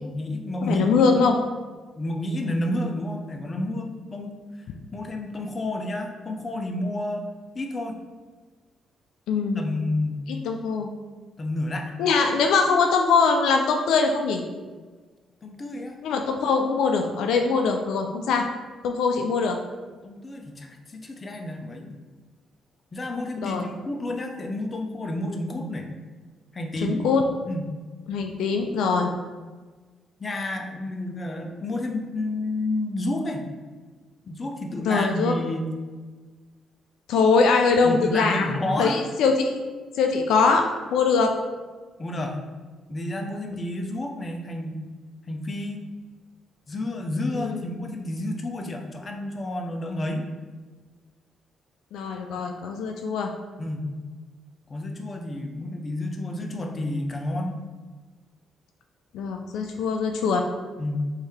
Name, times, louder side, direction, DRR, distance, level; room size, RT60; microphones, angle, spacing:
voice 1, 0.0-0.9 1.2-1.4 2.0-4.4 4.9-7.3 7.5-8.0 9.6-10.2 11.4-11.9 15.4-16.0 20.0-21.9 22.9-25.9 26.5-27.1 27.4-27.7 30.2-33.5 34.2-35.7 37.8-39.0 42.0-42.4 42.9-44.8 45.3-45.9 46.7-50.3 53.6-53.9 54.7-57.6 60.8-61.1, left 1 dB, 35° left, 3 dB, 0.5 m, -30 dB
voice 2, 0.6-1.4 9.3-9.6 10.5-10.9 12.0-14.4 16.0-18.5 18.8-19.6 23.4-23.7 26.8-27.2 28.1-29.1 34.9-35.3 37.1-39.6 39.9-41.3 47.3-47.7 51.9-53.3 59.1-60.4, left 4 dB, 85° left, 3 dB, 0.3 m, -22 dB
3.2 x 2.7 x 3.5 m, 1.4 s
cardioid pair, 75°, 0 cm